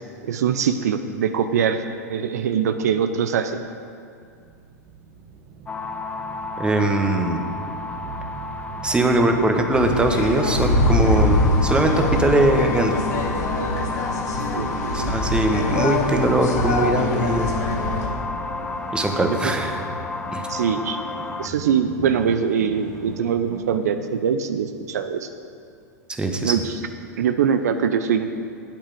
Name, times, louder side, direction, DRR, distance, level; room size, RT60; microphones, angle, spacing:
voice 1, 0.2-1.8 2.1-3.6 14.5-15.1 19.3-19.4 20.5-21.0 21.4-25.3 26.4-26.8 27.2-28.4, right 7 dB, 70° right, 8 dB, 0.6 m, -23 dB
sound 1, 4.2-23.7, right 3 dB, 40° right, 1.4 m, -40 dB
sound 2, 5.7-21.5, left 3 dB, 15° left, 0.6 m, -32 dB
voice 2, 6.6-7.4 8.8-13.0 14.9-17.6 18.9-19.8 20.3-20.5 26.2-26.5, right 2 dB, 10° right, 4 dB, 1.2 m, -21 dB
sound 3, 9.7-18.1, left 1 dB, 70° left, 2.4 m, -23 dB
8.8 x 8.7 x 7.8 m, 2.3 s
hypercardioid pair, 95°, 9 cm